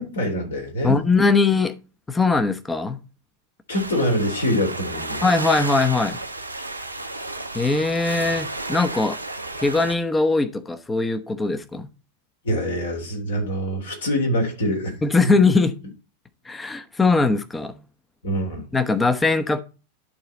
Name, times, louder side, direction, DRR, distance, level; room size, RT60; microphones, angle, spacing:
voice 1, 0.0-1.0 3.7-5.2 12.4-15.0 18.2-18.6, equal, 65° left, 3.6 m, -24 dB
voice 2, 0.8-1.8 2.1-3.0 5.2-6.2 7.5-9.2 9.6-11.9 15.0-15.8 16.4-17.8 18.7-19.6, left 3 dB, 10° left, 0.9 m, -21 dB
sound 1, 3.7-10.0, right 2 dB, 85° right, 1.0 m, -32 dB
11.5 x 4.2 x 4.1 m
figure-of-eight pair, 90°, 0 cm